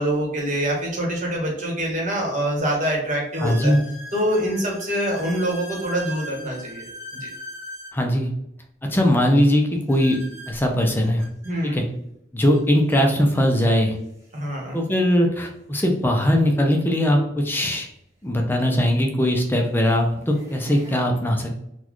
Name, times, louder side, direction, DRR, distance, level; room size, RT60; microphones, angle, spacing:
voice 1, 0.0-3.7 4.1-6.8 7.2-7.3 11.4-11.8 14.3-14.8, right 1 dB, 40° right, -1 dB, 1.1 m, -25 dB
sound 1, 2.3-2.4 3.3-8.0 9.9-11.5 12.5-12.6 12.9-13.1 13.9-14.0 16.2-16.3 18.4-18.5 19.2-19.5 20.0-21.0, equal, 15° right, 1.0 m, -40 dB
voice 2, 3.4-3.8 7.9-8.3 8.9-10.2 10.5-11.3 11.6-11.8 12.3-14.0 14.7-17.9 18.2-21.6, equal, 10° left, 2 dB, 0.4 m, -20 dB
4.1 x 2.3 x 3.0 m, 0.78 s
head